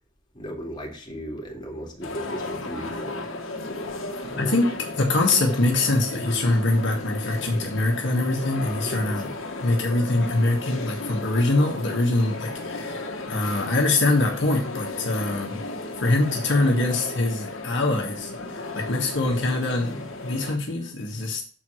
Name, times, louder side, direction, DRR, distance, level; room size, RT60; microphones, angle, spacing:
voice 1, 0.3-3.2 4.2-4.8 5.5-5.6 8.6-9.2 19.2-19.4, equal, 25° left, -1 dB, 2.4 m, -36 dB
sound 1, 2.0-20.6, left 2 dB, 80° left, 1.5 m, -35 dB
voice 2, 4.4-9.3 9.6-15.6 16.0-21.4, left 2 dB, 65° left, 0 dB, 1.5 m, -24 dB
7.0 x 4.7 x 6.3 m, 0.41 s
head